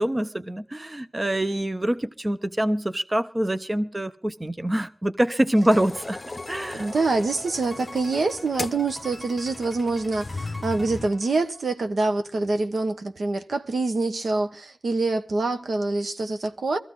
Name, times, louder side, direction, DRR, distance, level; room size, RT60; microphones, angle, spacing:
voice 1, 0.0-6.2 6.5-6.9, right 1 dB, 20° right, 0.7 m, -25 dB
sound 1, 5.5-11.8, left 1 dB, 15° left, 1.8 m, -44 dB
sound 2, 5.7-11.1, left 3 dB, 40° left, 0.7 m, -37 dB
voice 2, 6.7-16.8, right 3 dB, 75° right, 1.3 m, -25 dB
23.0 x 14.5 x 4.0 m
wide cardioid pair, 85°, 0 cm